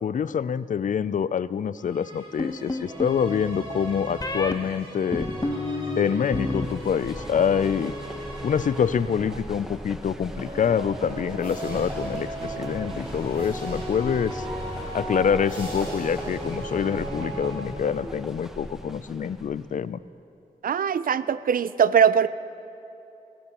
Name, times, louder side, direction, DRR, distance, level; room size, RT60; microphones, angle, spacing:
voice 1, 0.0-5.3 6.0-7.9 8.4-14.5 14.9-20.0, left 7 dB, 55° left, 17 dB, 0.4 m, -26 dB
sound 1, 1.8-9.6 10.2-18.1, right 1 dB, 35° right, 4.1 m, -37 dB
sound 2, 2.4-3.2 4.2-4.5 5.1-6.7 6.9-7.5, left 2 dB, 25° left, 0.9 m, -30 dB
sound 3, 6.6-19.8, equal, 5° right, 1.2 m, -39 dB
voice 2, 20.6-22.3, right 7 dB, 70° right, 15 dB, 0.5 m, -21 dB
20.0 x 16.5 x 3.0 m, 2.7 s
cardioid pair, 55°, 15 cm